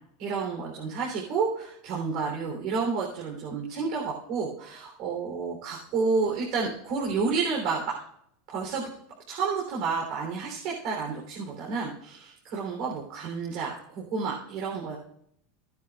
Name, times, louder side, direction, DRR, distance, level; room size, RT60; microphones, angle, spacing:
voice 1, 0.2-8.0 8.5-8.8 9.3-15.0, right 4 dB, 55° right, -2 dB, 3.5 m, -30 dB
16.5 x 10.5 x 2.5 m, 0.71 s
supercardioid pair, 130°, 0 cm